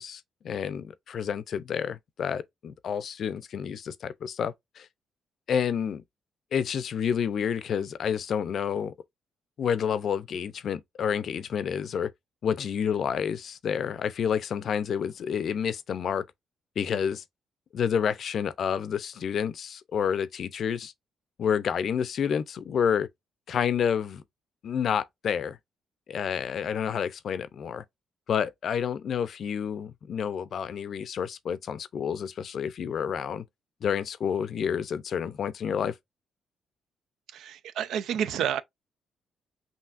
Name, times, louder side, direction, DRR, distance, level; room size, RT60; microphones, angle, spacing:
voice 1, 0.0-4.9 5.5-6.0 6.5-8.9 9.6-12.1 12.4-16.2 16.8-17.2 17.7-20.9 21.4-23.1 23.5-24.2 24.6-25.6 26.1-27.8 28.3-33.4 33.8-35.9, left 7 dB, 60° left, 0.5 m, -29 dB
voice 2, 37.3-38.6, right 9 dB, 80° right, 0.3 m, -29 dB
5.6 x 2.7 x 2.4 m
cardioid pair, 90°, 0 cm